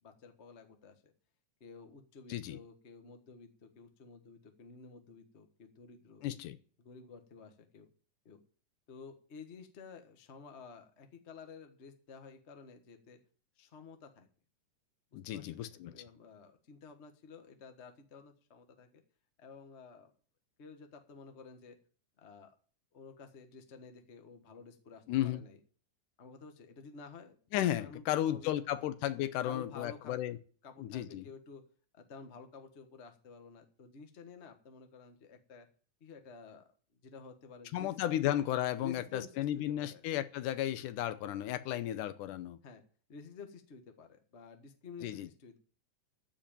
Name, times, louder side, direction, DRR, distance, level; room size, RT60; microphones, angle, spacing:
voice 1, 0.0-1.1 1.6-6.2 6.8-7.9 8.2-8.4 8.9-13.2 13.6-14.3 15.1-19.0 19.4-20.1 20.6-21.8 22.2-22.5 22.9-25.6 26.2-27.3 27.7-28.6 29.4-30.2 30.6-31.6 31.9-35.7 36.0-36.7 37.0-38.3 38.8-40.0 42.6-42.8 43.1-45.6, left 5 dB, 55° left, 6 dB, 0.7 m, -52 dB
voice 2, 6.2-6.6 15.1-15.9 25.1-25.4 27.5-30.4 30.8-31.3 37.7-42.6 45.0-45.3, left 12 dB, 80° left, 12 dB, 2.2 m, -34 dB
14.0 x 5.0 x 9.0 m, 0.42 s
omnidirectional pair, 3.7 m